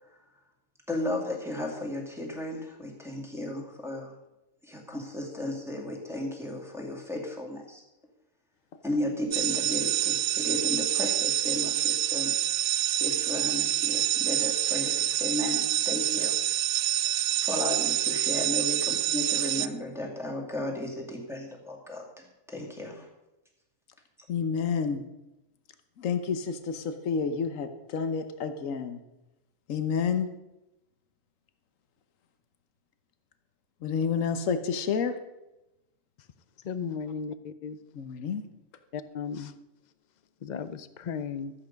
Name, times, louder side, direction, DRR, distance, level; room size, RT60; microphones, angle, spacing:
voice 1, 0.9-4.1 4.6-7.8 8.8-12.3 13.0-16.3 17.4-23.1, left 1 dB, ahead, -2 dB, 2.1 m, -34 dB
sound 1, 9.3-19.7, right 13 dB, 70° right, 0.9 m, -27 dB
voice 2, 24.3-25.0 26.0-29.0 29.7-30.3 33.8-35.2 37.9-38.4, left 6 dB, 70° left, 8 dB, 1.3 m, -29 dB
voice 3, 36.6-37.8 38.9-39.5 40.4-41.5, left 6 dB, 45° left, 13 dB, 0.6 m, -35 dB
13.0 x 8.9 x 5.2 m, 0.95 s
omnidirectional pair, 1.4 m